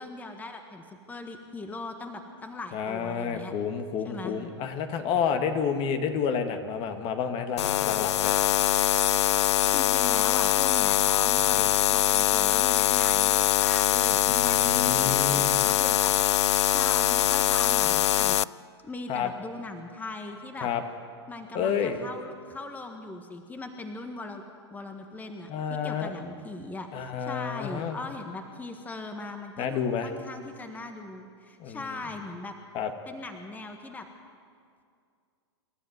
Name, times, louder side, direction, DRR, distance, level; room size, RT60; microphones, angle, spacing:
voice 1, 0.0-3.5 4.0-4.4 9.7-16.4 16.7-18.4 18.8-20.7 21.3-24.4 24.7-32.5 33.0-34.1, left 2 dB, 10° left, 5 dB, 1.6 m, -40 dB
voice 2, 2.7-8.3 11.5-11.6 14.3-15.7 19.1-19.3 20.6-20.8 21.5-22.0 25.5-26.1 26.9-28.0 29.6-30.1 31.6-31.8 32.7-32.9, left 7 dB, 40° left, 7 dB, 1.8 m, -30 dB
sound 1, 7.6-18.4, left 13 dB, 75° left, 0.4 m, -23 dB
27.0 x 12.5 x 9.4 m, 2.3 s
hypercardioid pair, 120°, 15 cm